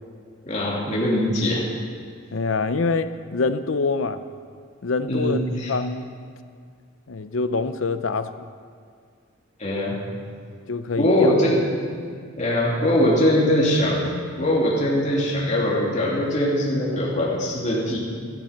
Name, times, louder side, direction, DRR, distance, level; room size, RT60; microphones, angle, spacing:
voice 1, 0.4-1.7 5.1-5.7 9.6-10.0 11.0-11.6 11.9-12.1 12.4-18.0, left 1 dB, 35° left, -4 dB, 2.9 m, -22 dB
voice 2, 2.3-4.2 4.8-5.4 5.7-6.1 7.1-8.3 10.7-11.3, left 4 dB, 70° left, 11 dB, 0.7 m, -25 dB
13.5 x 13.0 x 5.9 m, 2.1 s
head